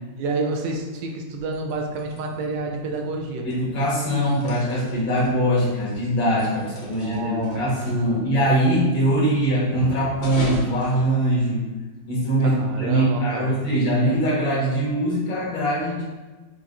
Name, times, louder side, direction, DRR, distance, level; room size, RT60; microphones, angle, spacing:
voice 1, 0.2-3.5 6.7-8.2 12.4-13.6, right 3 dB, 80° right, 2 dB, 1.3 m, -30 dB
sound 1, 1.3-11.8, left 1 dB, 65° left, 1.3 m, -39 dB
voice 2, 3.4-11.6 12.1-16.0, right 1 dB, 80° left, -6 dB, 2.0 m, -22 dB
5.3 x 2.6 x 2.4 m, 1.2 s
omnidirectional pair, 1.9 m